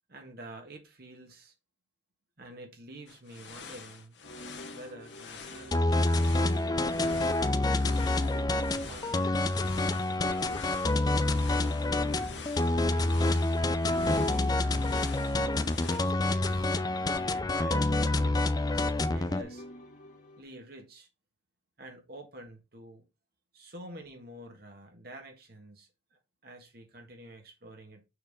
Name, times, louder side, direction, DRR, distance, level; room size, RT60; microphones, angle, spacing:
voice 1, 0.1-1.5 2.4-4.2 4.7-8.0 8.8-9.4 10.1-10.6 11.1-13.1 13.8-16.8 17.1-18.9 19.1-19.6 20.4-21.1 21.8-23.1 23.5-28.0, right 1 dB, 55° right, 1.6 m, -49 dB
sound 1, 3.1-16.0, left 5 dB, 70° left, 1.4 m, -47 dB
sound 2, 4.2-20.4, right 1 dB, 45° left, 1.4 m, -47 dB
sound 3, 5.7-19.4, left 2 dB, 20° left, 0.4 m, -27 dB
6.5 x 4.2 x 5.2 m
head